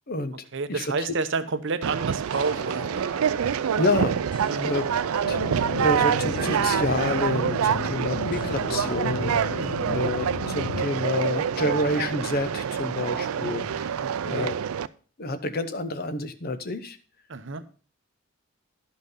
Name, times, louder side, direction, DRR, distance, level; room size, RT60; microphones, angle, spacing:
voice 1, 0.5-3.0 4.5-4.8 9.6-9.9 14.0-14.5 17.3-17.6, right 4 dB, 60° right, 11 dB, 0.8 m, -30 dB
Conversation, 1.8-14.9, right 7 dB, 85° right, 0.4 m, -26 dB
sound 1, 2.3-11.6, left 1 dB, 25° left, 1.1 m, -42 dB
voice 2, 3.8-4.2 4.6-4.9 5.3-5.4 5.8-9.6 9.9-14.5 15.2-17.0, left 2 dB, 45° left, 10 dB, 0.9 m, -28 dB
sound 2, 5.2-10.8, left 7 dB, 90° left, 0.4 m, -35 dB
11.5 x 5.7 x 5.5 m, 0.39 s
head